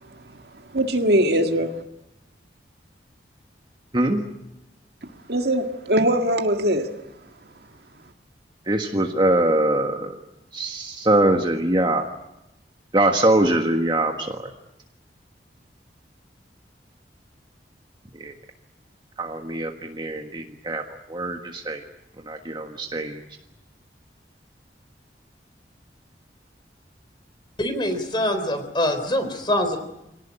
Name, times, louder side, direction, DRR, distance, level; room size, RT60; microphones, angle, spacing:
voice 1, 0.7-1.7 5.3-6.9, right 1 dB, 65° right, 1.9 m, -21 dB
voice 2, 3.9-4.2 8.6-10.2 10.5-12.0 12.9-14.5 18.1-18.3 19.2-21.8 22.2-23.2, right 1 dB, 25° right, 1.5 m, -23 dB
voice 3, 27.6-29.8, left 1 dB, 25° left, 3.8 m, -24 dB
25.5 x 18.5 x 10.0 m
head